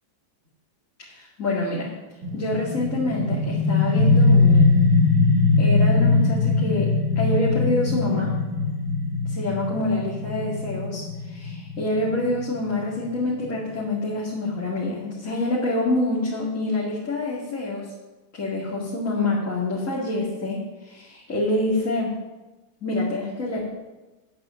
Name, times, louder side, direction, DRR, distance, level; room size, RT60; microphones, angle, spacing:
voice 1, 1.1-1.9 2.3-4.6 5.5-6.9 7.2-8.4 9.3-17.9 18.3-22.2 22.8-23.6, left 2 dB, 45° left, -6 dB, 2.7 m, -26 dB
sound 1, 2.2-13.7, left 3 dB, 60° right, 2.3 m, -21 dB
10.0 x 8.6 x 7.1 m, 1.1 s
omnidirectional pair, 2.0 m